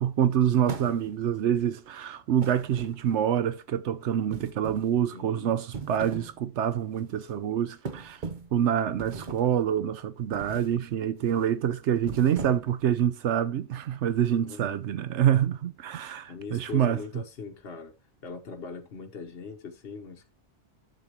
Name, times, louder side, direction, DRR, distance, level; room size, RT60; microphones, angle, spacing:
voice 1, 0.0-8.2 8.5-17.0, right 9 dB, 80° right, 0.9 m, -26 dB
sound 1, 0.7-1.3 2.4-3.3 4.3-5.0 5.6-6.4 6.8-7.0 7.9-8.6 9.0-9.6 10.3-10.8 11.2-11.5 12.0-12.8, right 4 dB, 45° right, 1.0 m, -40 dB
voice 2, 5.1-5.6 14.4-14.8 16.3-17.9 18.2-20.3, left 5 dB, 60° left, 1.3 m, -40 dB
11.0 x 7.5 x 3.0 m
omnidirectional pair, 1.2 m